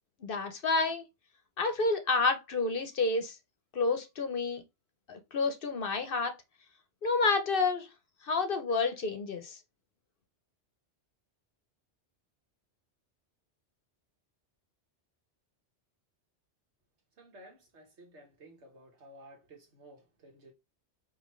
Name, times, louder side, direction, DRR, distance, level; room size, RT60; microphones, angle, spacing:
voice 1, 0.2-1.0 1.6-3.4 3.7-4.6 5.1-6.3 7.0-7.9 8.2-9.6, left 3 dB, 55° left, 0.9 m, -29 dB
voice 2, 17.2-20.5, right 1 dB, 70° right, 1.6 m, -54 dB
5.1 x 2.9 x 3.1 m
omnidirectional pair, 1.2 m